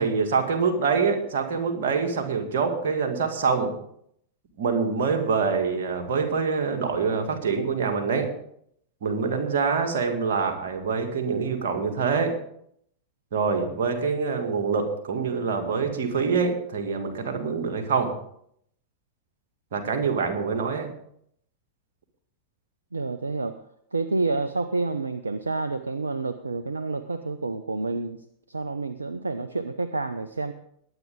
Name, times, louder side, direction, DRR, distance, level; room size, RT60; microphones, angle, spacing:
voice 1, 0.0-3.8 4.6-8.3 9.0-12.4 13.3-18.1 19.7-20.9, right 5 dB, 55° right, 3 dB, 2.3 m, -25 dB
voice 2, 22.9-23.5 23.9-28.2 28.5-30.5, right 3 dB, 80° right, 13 dB, 0.6 m, -29 dB
21.5 x 8.9 x 3.8 m, 0.69 s
figure-of-eight pair, 90°, 0 cm